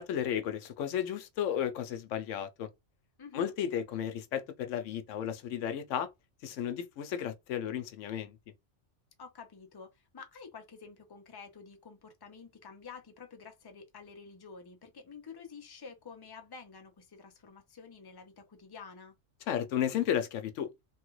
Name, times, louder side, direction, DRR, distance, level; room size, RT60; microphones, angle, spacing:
voice 1, 0.0-2.7 3.3-6.1 6.4-8.4 19.5-20.7, left 9 dB, 80° left, 0.9 m, -33 dB
voice 2, 3.2-3.5 9.2-19.1, left 5 dB, 30° left, 0.5 m, -49 dB
3.2 x 2.3 x 3.0 m
omnidirectional pair, 1.3 m